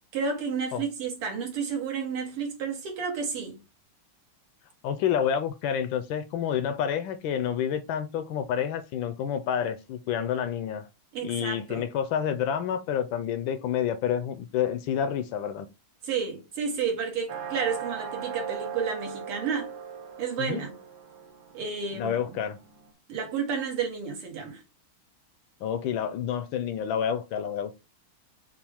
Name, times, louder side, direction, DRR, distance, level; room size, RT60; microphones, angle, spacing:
voice 1, 0.1-3.6 11.1-11.9 16.0-19.7 20.2-20.7 21.5-22.4 23.1-24.6, right 6 dB, 85° right, 2.5 m, -31 dB
voice 2, 4.8-10.9 11.2-15.7 20.4-20.6 22.0-22.6 25.6-27.8, left 8 dB, 75° left, 1.2 m, -29 dB
sound 1, 17.3-22.9, right 7 dB, 60° right, 1.6 m, -39 dB
5.8 x 2.4 x 3.4 m
omnidirectional pair, 2.4 m